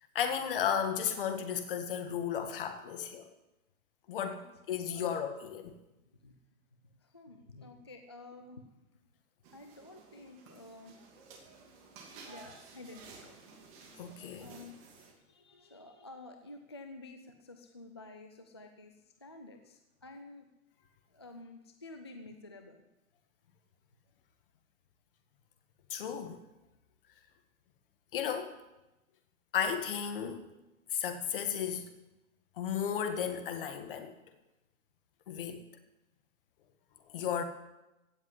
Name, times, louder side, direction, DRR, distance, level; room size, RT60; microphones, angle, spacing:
voice 1, 0.2-3.3 4.1-5.8 13.9-14.5 25.9-26.4 28.1-28.6 29.5-30.5 30.9-31.9 32.6-34.1 35.3-35.6 37.1-37.4, left 8 dB, 40° left, 7 dB, 1.8 m, -34 dB
voice 2, 7.0-8.6 9.5-11.0 12.3-13.4 14.4-14.8 15.2-20.5 21.1-22.8, left 2 dB, 20° left, 5 dB, 0.4 m, -51 dB
sound 1, 9.4-15.1, right 4 dB, 25° right, 2.6 m, -54 dB
16.5 x 7.3 x 9.8 m, 0.98 s
hypercardioid pair, 160°, 44 cm